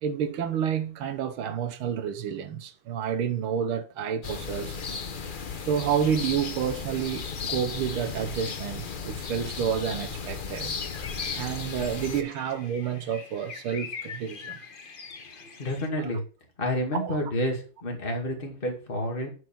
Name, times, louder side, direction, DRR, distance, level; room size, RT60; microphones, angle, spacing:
voice 1, 0.0-4.8 5.7-10.7 11.4-14.6 16.0-16.1 16.9-17.2, right 8 dB, 85° right, 1.8 m, -29 dB
sound 1, 4.2-12.2, left 5 dB, 90° left, 0.4 m, -35 dB
sound 2, 10.8-15.9, left 5 dB, 40° left, 0.7 m, -43 dB
voice 2, 15.2-16.2 16.6-19.3, left 1 dB, 25° left, 2.4 m, -30 dB
9.3 x 4.7 x 7.4 m
omnidirectional pair, 2.3 m